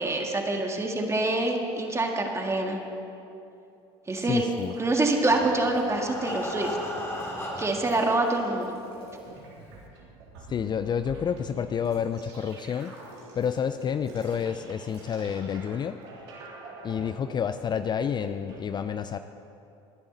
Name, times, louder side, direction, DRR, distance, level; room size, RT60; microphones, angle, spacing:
voice 1, 0.0-2.8 4.1-4.5 4.8-6.8 7.6-8.7, right 2 dB, 20° right, 2 dB, 1.9 m, -26 dB
sound 1, 4.1-5.8 6.1-18.6, right 3 dB, 85° right, 3.0 m, -47 dB
voice 2, 4.2-4.7 10.5-12.9 13.4-16.0 16.8-19.2, left 7 dB, 35° left, 10 dB, 0.5 m, -29 dB
Breathing, 5.1-8.0 8.8-8.9 9.3-9.4 9.8-9.9, left 1 dB, 15° left, 2.7 m, -36 dB
19.5 x 10.5 x 4.0 m, 2.7 s
hypercardioid pair, 80°, 14 cm